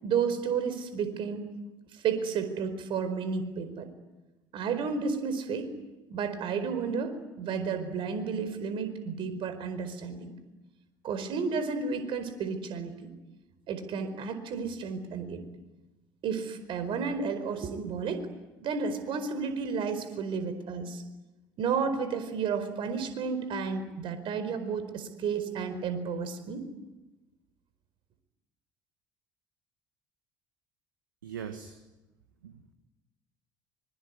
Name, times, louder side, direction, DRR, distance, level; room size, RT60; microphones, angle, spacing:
voice 1, 0.0-1.5 1.9-3.9 4.5-5.7 6.1-10.4 11.0-13.1 13.7-15.4 16.2-18.3 18.6-21.0 21.6-26.6, right 5 dB, 55° right, 10 dB, 4.8 m, -32 dB
voice 2, 31.2-31.7 32.4-32.7, right 8 dB, 85° right, 8 dB, 1.7 m, -40 dB
25.5 x 22.5 x 9.8 m, 1.1 s
hypercardioid pair, 60°, 11 cm